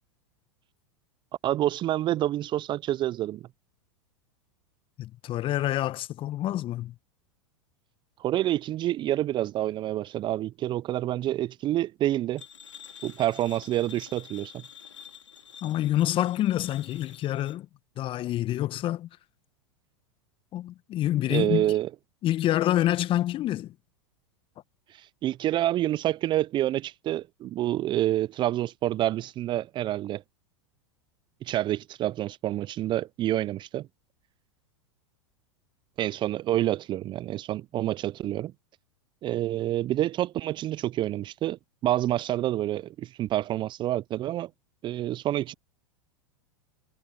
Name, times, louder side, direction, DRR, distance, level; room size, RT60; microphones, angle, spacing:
voice 1, 1.4-3.4 8.2-12.4 13.0-14.6 21.3-21.9 24.9-30.2 31.4-33.9 36.0-38.5 39.2-44.5 44.8-45.5, right 13 dB, 30° right, 0.6 m, -28 dB
voice 2, 5.0-6.9 15.6-17.7 18.0-19.1 20.5-21.6 22.2-23.7, left 13 dB, 35° left, 1.3 m, -27 dB
sound 1, 12.4-17.6, left 8 dB, 85° left, 3.0 m, -48 dB
hypercardioid pair, 95°, 15 cm